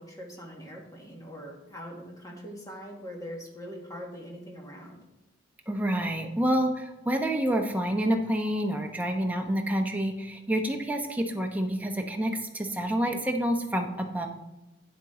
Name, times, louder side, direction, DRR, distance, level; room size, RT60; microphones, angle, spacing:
voice 1, 0.0-5.0, equal, 20° left, -1 dB, 1.7 m, -42 dB
voice 2, 5.7-14.3, right 1 dB, 10° right, 2 dB, 0.9 m, -28 dB
9.3 x 7.3 x 3.8 m, 0.99 s
head